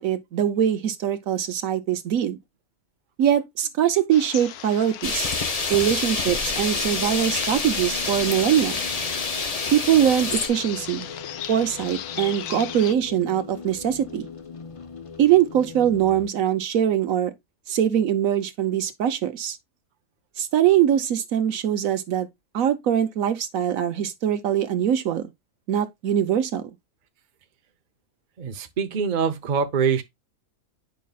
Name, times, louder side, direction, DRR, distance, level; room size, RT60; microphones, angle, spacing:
voice 1, 0.0-2.4 3.2-5.3 5.7-8.8 9.7-11.1 11.5-14.3 15.2-17.3 17.7-19.6 20.4-22.3 22.5-25.3 25.7-26.6, right 10 dB, 70° right, 1.1 m, -22 dB
sound 1, 4.1-12.9, left 10 dB, 80° left, 1.2 m, -38 dB
sound 2, 5.0-10.5, left 4 dB, 35° left, 0.7 m, -27 dB
sound 3, 6.1-16.3, left 5 dB, 60° left, 0.3 m, -41 dB
voice 2, 28.4-30.0, right 6 dB, 40° right, 0.7 m, -24 dB
9.2 x 5.3 x 2.3 m
omnidirectional pair, 1.5 m